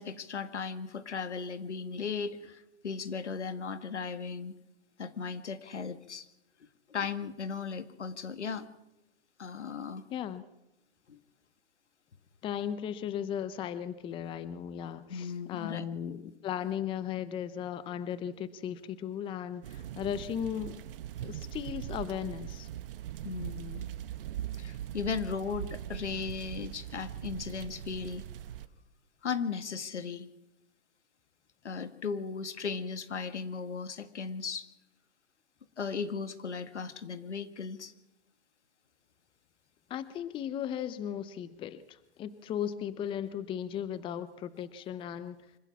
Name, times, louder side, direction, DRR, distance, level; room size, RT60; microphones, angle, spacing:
voice 1, 0.0-4.5 5.0-6.3 6.9-8.7 9.4-10.0 11.1-11.2 15.1-15.8 23.2-23.9 24.6-28.2 29.2-30.3 31.6-34.7 35.8-37.9, left 5 dB, 85° left, 11 dB, 1.8 m, -36 dB
voice 2, 10.1-10.4 12.4-20.8 21.2-22.7 39.9-45.4, left 9 dB, 15° left, 15 dB, 0.7 m, -36 dB
sound 1, 19.6-28.7, right 11 dB, 55° right, 1.3 m, -41 dB
25.0 x 15.0 x 7.3 m, 0.94 s
hypercardioid pair, 135°, 34 cm